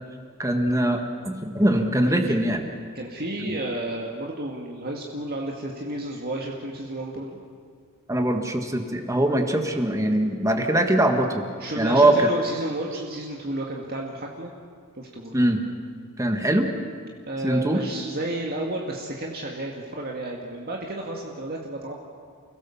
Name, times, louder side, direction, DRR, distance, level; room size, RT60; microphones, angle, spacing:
voice 1, 0.4-1.0 1.3-2.7 3.4-3.6 8.1-11.5 11.8-12.3 15.3-15.6 16.2-16.7 17.4-17.8, right 1 dB, 15° right, 4 dB, 1.7 m, -22 dB
voice 2, 2.9-7.4 11.6-14.5 15.0-15.4 17.3-22.0, right 1 dB, 45° right, -1 dB, 2.1 m, -32 dB
30.0 x 17.0 x 7.3 m, 2.1 s
head